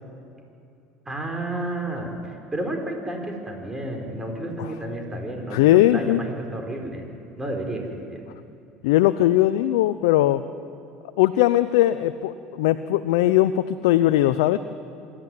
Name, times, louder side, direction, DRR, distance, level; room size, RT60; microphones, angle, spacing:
voice 1, 1.0-7.0 7.4-8.2, right 1 dB, 15° right, 2 dB, 4.8 m, -31 dB
voice 2, 5.5-6.2 8.8-10.4 11.2-14.6, left 14 dB, 80° left, 11 dB, 0.6 m, -19 dB
26.5 x 11.5 x 9.3 m, 2.7 s
hypercardioid pair, 85°, 2 cm